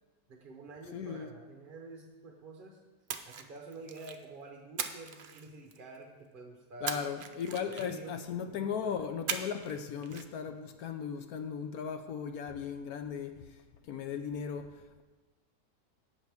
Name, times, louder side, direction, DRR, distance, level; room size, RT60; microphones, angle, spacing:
voice 1, 0.3-2.8 3.3-7.1 7.6-8.1 8.5-8.9, right 3 dB, 40° right, 0.9 m, -49 dB
voice 2, 0.9-1.3 6.8-13.6 13.8-15.0, left 7 dB, 70° left, 1.1 m, -37 dB
Splash splatter, 3.1-4.2 4.8-6.0 6.9-8.1 9.3-9.8 10.0-10.2, right 6 dB, 85° right, 0.4 m, -39 dB
17.0 x 6.5 x 3.5 m
omnidirectional pair, 1.7 m